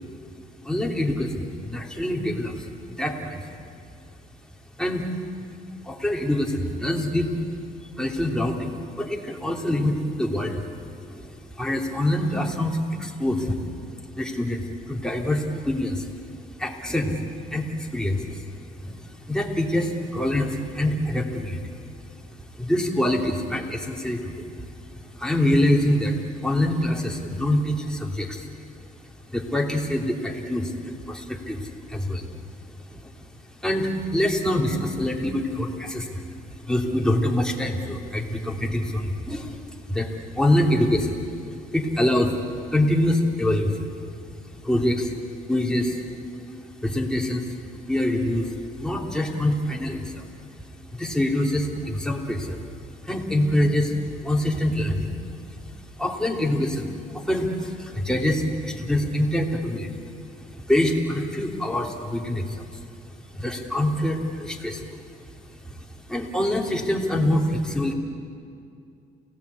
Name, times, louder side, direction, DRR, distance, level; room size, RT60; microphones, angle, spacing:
voice 1, 0.4-3.6 4.8-5.1 5.8-7.3 8.0-10.8 11.1-13.6 14.1-16.1 16.6-18.4 18.8-21.7 22.6-28.5 29.3-32.3 32.9-33.1 33.6-41.2 41.7-42.4 42.7-43.9 44.6-45.1 45.5-46.0 46.8-47.6 47.9-50.3 50.9-52.6 53.0-55.2 55.5-55.6 56.0-60.0 60.3-62.8 63.3-65.0 65.7-67.9, left 1 dB, 5° left, 0 dB, 3.1 m, -25 dB
29.0 x 17.0 x 8.4 m, 2.5 s
cardioid pair, 90°, 20 cm